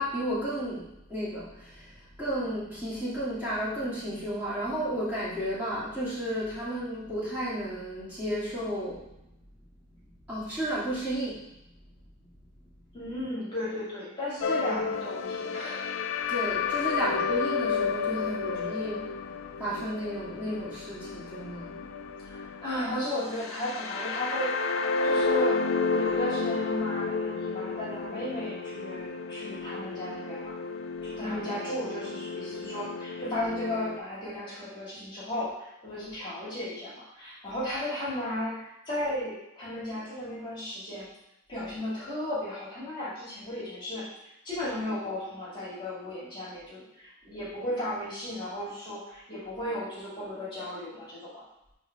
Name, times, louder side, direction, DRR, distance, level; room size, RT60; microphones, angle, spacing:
voice 1, 0.0-9.1 10.3-11.4 14.7-14.9 16.3-21.9 31.2-31.5, equal, 10° right, -11 dB, 2.3 m, -33 dB
voice 2, 12.9-15.9 22.2-25.6 25.9-30.6 31.0-41.1 41.5-44.1 44.4-51.4, left 1 dB, 25° left, -8 dB, 1.9 m, -35 dB
sound 1, 14.4-34.0, left 4 dB, 90° left, 0.5 m, -31 dB
5.5 x 3.3 x 5.7 m, 0.87 s
head